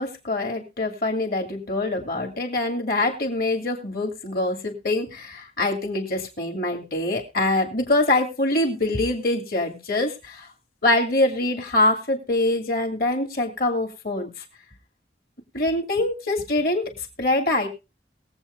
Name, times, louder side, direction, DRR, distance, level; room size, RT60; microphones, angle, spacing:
voice 1, 0.0-10.5 10.8-14.3 15.5-16.8 17.2-17.7, left 2 dB, 55° left, 3 dB, 2.7 m, -24 dB
21.5 x 8.1 x 2.7 m, 0.29 s
head